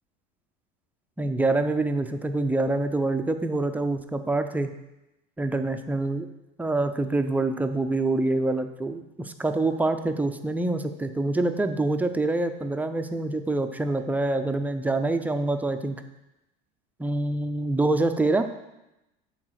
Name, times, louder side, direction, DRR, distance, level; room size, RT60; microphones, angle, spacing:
voice 1, 1.2-4.7 5.4-6.3 6.6-16.0 17.0-18.4, right 2 dB, 5° right, 7 dB, 0.5 m, -26 dB
8.7 x 4.0 x 6.4 m, 0.94 s
supercardioid pair, 130°, 21 cm